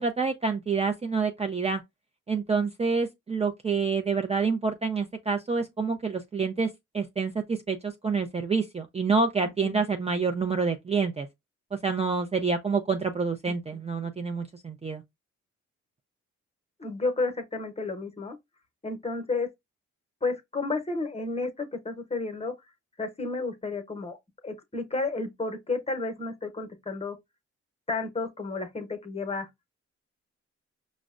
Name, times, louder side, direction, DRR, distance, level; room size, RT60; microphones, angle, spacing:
voice 1, 0.0-1.8 2.3-11.3 11.7-15.0, right 4 dB, 20° right, 0.4 m, -27 dB
voice 2, 9.4-9.8 13.5-13.6 16.8-18.4 18.8-19.5 20.2-22.5 23.0-24.2 24.4-27.2 27.9-29.5, left 3 dB, 20° left, 0.8 m, -31 dB
5.0 x 2.1 x 2.4 m
cardioid pair, 60°, 30 cm